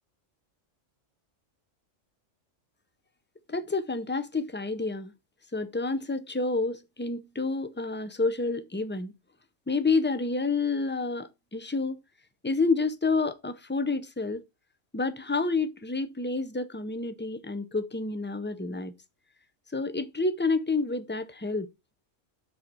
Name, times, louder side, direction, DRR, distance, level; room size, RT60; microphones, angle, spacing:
voice 1, 3.5-5.1 5.5-9.1 9.7-12.0 12.4-14.4 14.9-18.9 19.7-21.7, left 3 dB, 15° left, 0.3 m, -29 dB
7.6 x 3.9 x 5.9 m
omnidirectional pair, 1.3 m